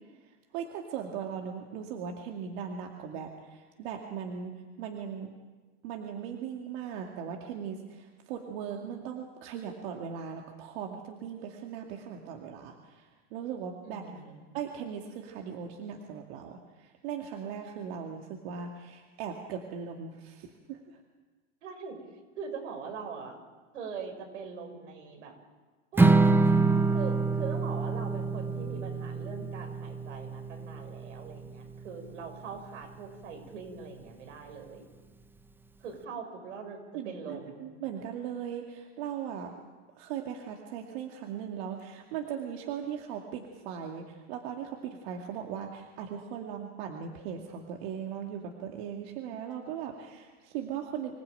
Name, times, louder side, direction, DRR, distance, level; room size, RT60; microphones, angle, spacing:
voice 1, 0.2-4.5 4.8-5.3 5.8-14.1 14.5-21.0 36.9-39.5 40.0-51.2, right 8 dB, 55° right, 2 dB, 2.3 m, -39 dB
voice 2, 13.8-14.5 21.6-22.0 22.4-23.4 23.7-25.3 25.9-26.3 26.9-34.8 35.8-36.8 37.0-37.6, right 5 dB, 80° right, 3 dB, 6.5 m, -42 dB
Strum, 26.0-32.2, right 3 dB, 5° right, 0.8 m, -26 dB
26.0 x 16.0 x 9.1 m, 1.3 s
supercardioid pair, 130°, 36 cm